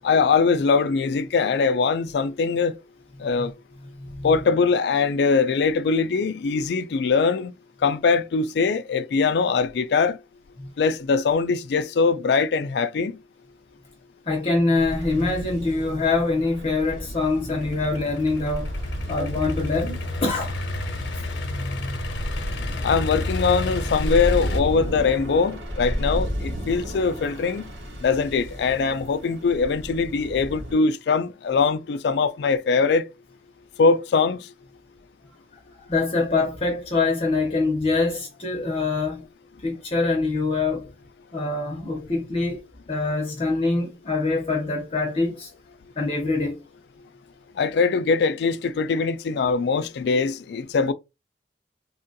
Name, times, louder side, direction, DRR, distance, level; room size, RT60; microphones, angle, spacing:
voice 1, 0.0-2.8 3.2-3.5 4.2-7.5 7.8-10.2 10.8-13.2 22.8-27.6 28.0-33.1 33.8-34.5 47.6-50.9, left 5 dB, 60° left, 0.3 m, -22 dB
voice 2, 4.0-4.3 10.6-10.7 14.3-18.7 19.1-20.6 21.4-22.0 35.7-39.2 39.6-40.9 41.3-45.5 46.0-46.6, left 3 dB, 30° left, 0.7 m, -24 dB
sound 1, 14.8-30.7, equal, 75° right, 1.3 m, -33 dB
Idling / Accelerating revving vroom, 17.5-24.6, left 2 dB, 85° left, 0.7 m, -31 dB
3.5 x 2.2 x 2.6 m
head